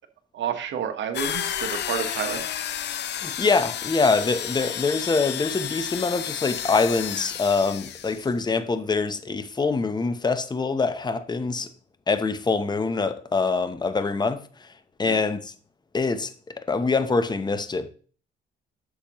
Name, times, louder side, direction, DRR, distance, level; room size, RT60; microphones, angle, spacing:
voice 1, 0.3-2.4 15.0-15.2, right 8 dB, 70° right, 1.3 m, -30 dB
sound 1, 1.1-8.3, left 10 dB, 60° left, 0.7 m, -31 dB
voice 2, 3.2-11.7 12.1-14.7 15.0-15.5 15.9-17.9, left 4 dB, 20° left, 0.9 m, -24 dB
8.6 x 7.1 x 3.1 m
cardioid pair, 90°, 20 cm